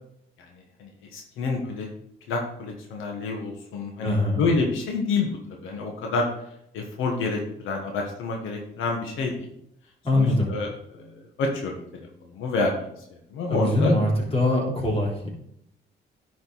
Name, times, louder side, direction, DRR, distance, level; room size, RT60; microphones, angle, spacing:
voice 1, 0.8-1.9 2.3-5.3 5.6-6.3 6.7-9.3 10.1-11.8 12.3-12.9 13.3-13.9, left 3 dB, 90° left, 1 dB, 1.4 m, -28 dB
voice 2, 4.0-4.4 10.0-10.5 13.5-15.3, left 1 dB, 30° left, -3 dB, 3.5 m, -23 dB
10.5 x 5.2 x 4.1 m, 0.76 s
cardioid pair, 90°, 20 cm